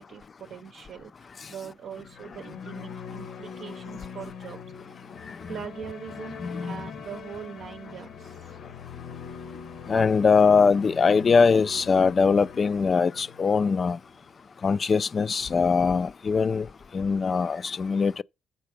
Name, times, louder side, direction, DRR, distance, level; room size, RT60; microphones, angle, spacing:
voice 1, 0.0-5.0 5.5-8.6, right 8 dB, 65° right, 0.6 m, -42 dB
sound 1, 1.8-14.3, left 6 dB, 80° left, 1.3 m, -43 dB
voice 2, 6.4-6.8 9.9-14.0 14.6-16.6 16.9-18.2, left 5 dB, 40° left, 0.4 m, -22 dB
7.6 x 4.5 x 6.6 m
cardioid pair, 90°, 0 cm